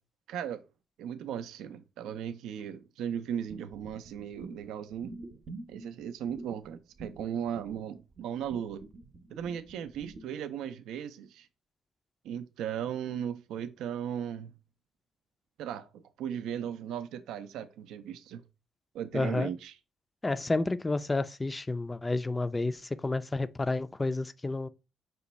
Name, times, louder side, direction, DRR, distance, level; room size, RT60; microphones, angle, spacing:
voice 1, 0.3-0.6 1.0-5.1 5.7-8.8 9.3-11.5 12.2-14.5 15.6-18.4 18.9-19.8, right 9 dB, 85° right, 0.4 m, -37 dB
sound 1, 3.5-10.3, right 3 dB, 55° right, 0.7 m, -47 dB
voice 2, 19.1-19.5 20.2-24.7, left 2 dB, 20° left, 0.3 m, -30 dB
5.0 x 2.2 x 4.0 m
cardioid pair, 90°, 0 cm